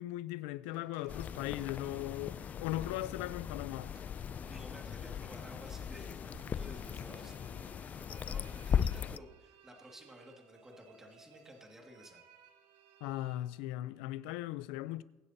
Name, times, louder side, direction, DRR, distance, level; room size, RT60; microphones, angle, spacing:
voice 1, 0.0-3.9 13.0-15.0, left 15 dB, 90° left, 0.5 m, -38 dB
sound 1, 0.6-8.8, right 3 dB, 65° right, 3.9 m, -62 dB
sound 2, 1.1-9.2, left 8 dB, 30° left, 0.3 m, -38 dB
voice 2, 4.4-7.4 7.8-12.2, equal, 10° right, 2.1 m, -53 dB
sound 3, 6.5-14.2, right 7 dB, 85° right, 1.3 m, -61 dB
23.5 x 9.9 x 2.8 m
cardioid pair, 140°, 6 cm